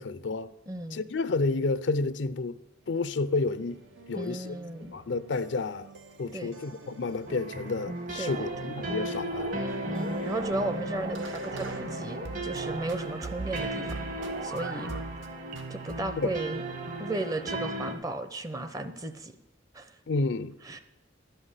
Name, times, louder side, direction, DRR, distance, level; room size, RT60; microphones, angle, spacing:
voice 1, 0.0-0.5 0.9-2.6 2.9-3.8 4.1-4.5 4.9-5.8 6.2-9.5 16.2-16.3 20.1-20.5, left 3 dB, 70° left, 0.5 m, -30 dB
voice 2, 0.7-1.0 4.1-4.9 6.3-6.5 8.2-8.5 9.9-14.1 14.4-15.0 15.7-16.6 17.0-19.3 19.7-19.9 20.6-20.8, right 2 dB, 20° right, 0.6 m, -35 dB
sound 1, 2.8-12.6 12.9-14.6 14.9-15.3 15.5-16.3, right 3 dB, 85° right, 1.1 m, -45 dB
sound 2, 7.3-17.9, right 1 dB, 45° right, 1.4 m, -36 dB
sound 3, 8.3-15.0, right 1 dB, 60° right, 0.9 m, -40 dB
11.5 x 5.7 x 8.1 m
head